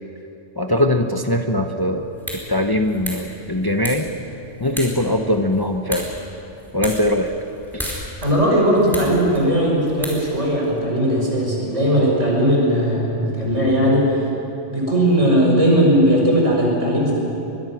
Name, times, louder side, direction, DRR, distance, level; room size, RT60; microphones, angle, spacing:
voice 1, 0.6-2.0 2.5-4.1 4.6-6.1 6.7-7.3, left 1 dB, 20° left, 5 dB, 0.9 m, -21 dB
sound 1, 1.9-10.8, equal, ahead, 4.8 m, -35 dB
voice 2, 8.2-14.2 14.7-17.1, equal, 75° right, -2 dB, 6.0 m, -18 dB
24.0 x 22.0 x 6.2 m, 2.9 s
omnidirectional pair, 1.3 m